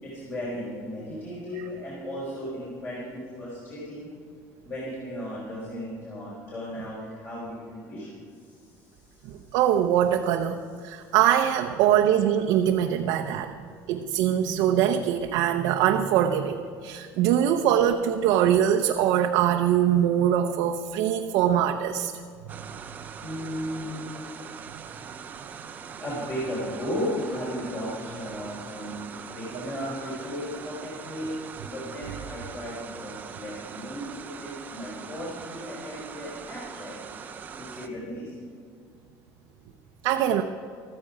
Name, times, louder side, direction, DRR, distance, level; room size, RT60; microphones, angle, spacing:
voice 1, 0.0-4.1 4.6-9.5 10.8-11.2 23.2-24.1 26.0-37.0 37.5-38.3, equal, 30° left, -7 dB, 4.2 m, -35 dB
voice 2, 9.3-13.5 13.9-22.1 40.0-40.4, right 10 dB, 70° right, 3 dB, 0.7 m, -23 dB
sound 1, 22.5-37.9, right 6 dB, 25° right, 0.7 m, -42 dB
14.5 x 14.0 x 5.0 m, 2.2 s
cardioid pair, 175°, 7 cm